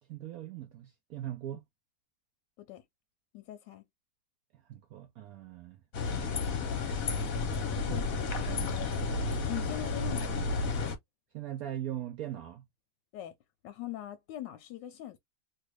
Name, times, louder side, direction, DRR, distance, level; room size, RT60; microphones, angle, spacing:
voice 1, 0.1-1.6 4.5-5.8 6.1-6.6 7.8-8.0 11.3-12.6, right 12 dB, 80° right, 0.8 m, -40 dB
voice 2, 3.3-3.9 7.7-8.0 8.3-8.9 9.5-10.4 13.1-13.3 13.6-15.2, left 13 dB, 75° left, 1.2 m, -42 dB
sound 1, 5.9-11.0, left 3 dB, 55° left, 1.1 m, -32 dB
3.1 x 2.4 x 3.0 m
omnidirectional pair, 2.0 m